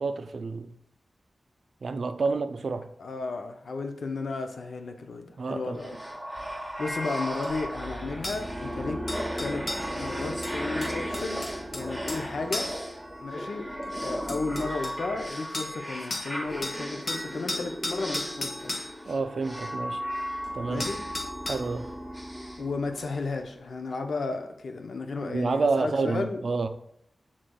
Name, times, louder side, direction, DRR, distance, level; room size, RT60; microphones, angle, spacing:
voice 1, 0.0-0.7 1.8-2.9 5.4-5.8 19.1-20.0 20.5-20.9 21.5-21.9 25.2-26.7, right 4 dB, 70° right, 0.3 m, -29 dB
voice 2, 3.0-6.0 6.8-9.0 9.4-9.7 10.0-12.7 13.2-13.7 14.0-18.8 19.0-19.2 20.7-21.0 22.6-26.4, left 3 dB, 80° left, 0.5 m, -33 dB
sound 1, 5.8-23.4, equal, ahead, 0.9 m, -35 dB
sound 2, 7.4-7.5 8.2-8.4 9.1-9.9 10.4-12.2 12.5-12.8 13.8-13.9 14.3-15.0 15.5-15.8 16.1-16.3 16.6-18.9 20.4-20.5 20.8-21.7 23.0-23.1, left 1 dB, 50° left, 0.8 m, -35 dB
6.3 x 3.7 x 2.3 m
cardioid pair, 55°, 0 cm